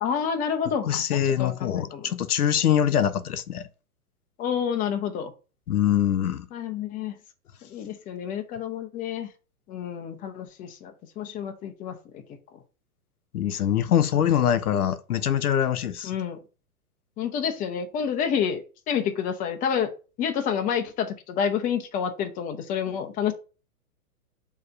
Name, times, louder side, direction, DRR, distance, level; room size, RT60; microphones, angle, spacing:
voice 1, 0.0-2.1 3.0-3.1 4.4-5.3 6.5-7.2 7.7-9.3 9.7-12.2 16.0-16.4 17.2-19.9 20.2-23.3, left 8 dB, 20° left, 0.7 m, -29 dB
voice 2, 0.9-3.7 5.7-6.5 13.3-16.1, left 9 dB, 80° left, 0.8 m, -23 dB
6.5 x 3.0 x 5.1 m
hypercardioid pair, 120°, 44 cm